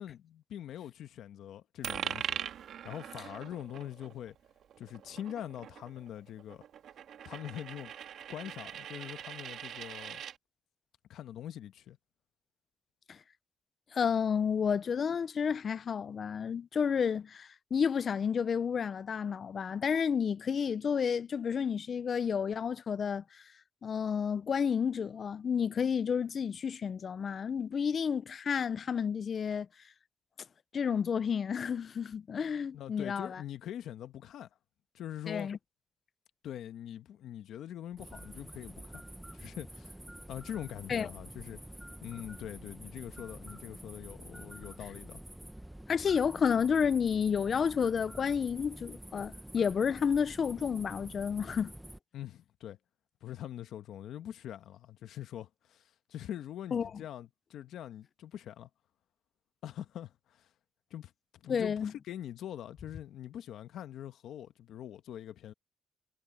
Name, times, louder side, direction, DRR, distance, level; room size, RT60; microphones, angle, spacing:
voice 1, 0.0-4.4 4.8-6.6 7.2-7.9 8.3-10.2 11.1-12.0 32.7-34.5 34.9-35.5 36.4-39.0 39.3-40.0 40.3-41.6 42.0-45.2 52.1-52.8 53.2-58.7 59.6-60.5 60.9-65.5, left 11 dB, 80° left, 1.1 m, -43 dB
Coin (dropping), 1.8-10.4, right 9 dB, 70° right, 1.9 m, -42 dB
voice 2, 13.9-23.4 23.8-29.7 30.7-33.4 35.3-35.6 40.9-41.1 45.9-51.7 56.7-56.9 61.5-61.9, left 7 dB, 45° left, 0.5 m, -31 dB
sound 1, 37.9-52.0, right 1 dB, 5° right, 1.0 m, -48 dB
cardioid pair, 110°, 0 cm